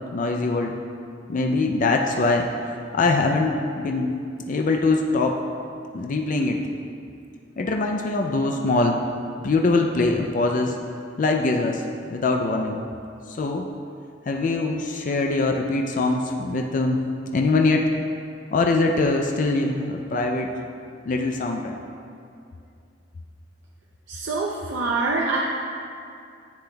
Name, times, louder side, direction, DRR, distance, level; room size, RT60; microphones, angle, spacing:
voice 1, 0.1-0.8 1.3-2.5 2.9-4.1 4.5-5.4 5.9-6.6 7.6-9.0 9.4-10.8 11.2-11.8 12.1-12.8 13.3-13.7 14.3-17.0 17.3-17.9 18.5-20.5 21.1-21.8, left 3 dB, 45° left, 2 dB, 0.4 m, -22 dB
voice 2, 24.1-25.4, right 3 dB, 80° right, -3 dB, 0.6 m, -25 dB
10.5 x 7.8 x 2.3 m, 2.5 s
head